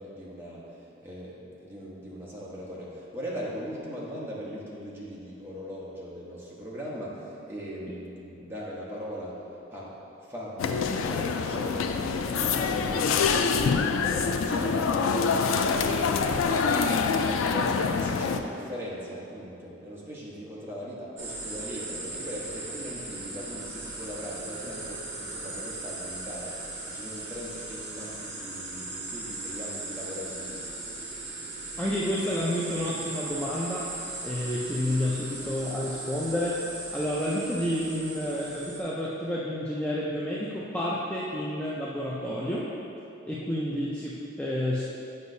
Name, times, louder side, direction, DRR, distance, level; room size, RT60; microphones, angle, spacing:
voice 1, 0.0-10.0 10.3-13.4 14.0-30.7, equal, 10° right, -7 dB, 1.0 m, -39 dB
sound 1, 10.6-18.4, left 5 dB, 80° left, 0.3 m, -25 dB
sound 2, 21.2-38.8, right 2 dB, 60° right, 1.0 m, -38 dB
voice 2, 31.8-33.9 34.2-36.6 36.9-42.7 43.2-44.8, left 1 dB, 5° left, -6 dB, 0.4 m, -30 dB
8.0 x 5.3 x 2.7 m, 2.8 s
head